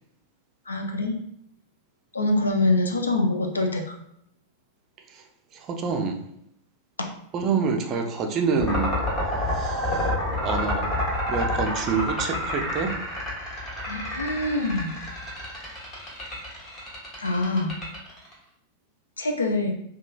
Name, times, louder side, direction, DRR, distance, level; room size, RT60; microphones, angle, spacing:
voice 1, 0.7-1.2 2.1-4.0 13.9-14.9 17.2-17.8 19.2-19.7, left 2 dB, 75° left, 3 dB, 0.4 m, -25 dB
voice 2, 5.5-6.2 7.3-8.9 9.2-10.1 10.4-10.9 11.3-12.9, right 5 dB, 35° right, 4 dB, 0.4 m, -27 dB
sound 1, 8.6-18.3, left 1 dB, 30° left, 1.1 m, -28 dB
2.9 x 2.3 x 2.3 m, 0.74 s
figure-of-eight pair, 90°, 0 cm